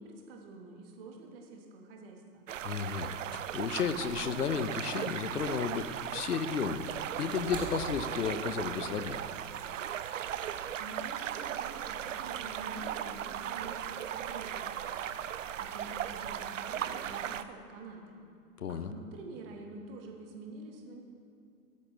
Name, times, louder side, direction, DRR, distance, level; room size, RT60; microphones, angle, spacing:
voice 1, 0.0-2.4 10.8-15.1 15.6-18.2 18.7-21.0, right 3 dB, 35° right, 2 dB, 1.6 m, -47 dB
sound 1, 2.5-17.4, right 10 dB, 55° right, 0.5 m, -37 dB
voice 2, 2.6-6.8 7.2-9.2 18.6-18.9, left 6 dB, 70° left, 11 dB, 0.8 m, -33 dB
sound 2, 4.5-8.8 10.0-10.1, right 3 dB, 10° right, 1.4 m, -47 dB
13.5 x 12.0 x 3.3 m, 2.6 s
figure-of-eight pair, 110°, 48 cm